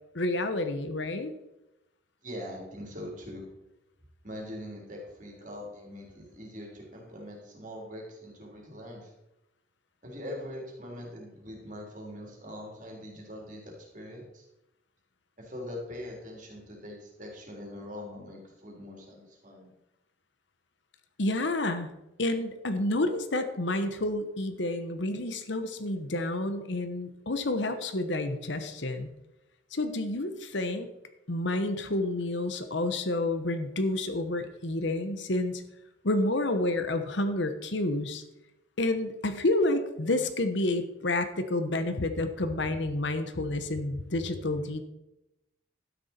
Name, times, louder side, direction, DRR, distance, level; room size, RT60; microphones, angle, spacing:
voice 1, 0.1-1.3 21.2-21.9 22.2-29.1 29.7-30.9 31.3-35.6 36.0-38.2 38.8-44.8, left 2 dB, 70° left, 9 dB, 1.1 m, -29 dB
voice 2, 2.2-3.4 4.2-9.1 10.0-14.5 15.4-19.7, left 1 dB, 40° right, -1 dB, 3.3 m, -42 dB
12.5 x 9.9 x 4.4 m, 0.92 s
head